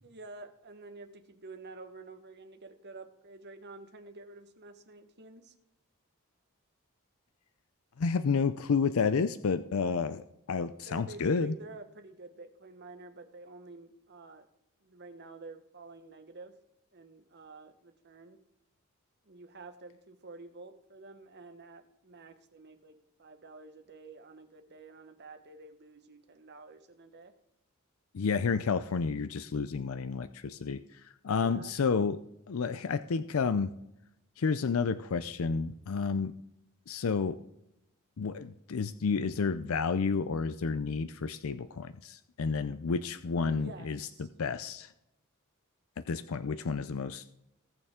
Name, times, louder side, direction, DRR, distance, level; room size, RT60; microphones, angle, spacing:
voice 1, 0.0-5.5 10.8-14.5 14.8-16.6 16.9-18.4 19.2-27.3 31.3-31.7 43.5-44.3, right 3 dB, 50° right, 8 dB, 1.2 m, -50 dB
voice 2, 8.0-11.5 28.1-30.8 31.2-32.2 32.5-33.7 34.4-36.3 36.9-37.4 38.2-44.9 46.1-47.3, left 5 dB, 70° left, 12 dB, 0.5 m, -30 dB
20.0 x 6.7 x 3.7 m, 0.83 s
head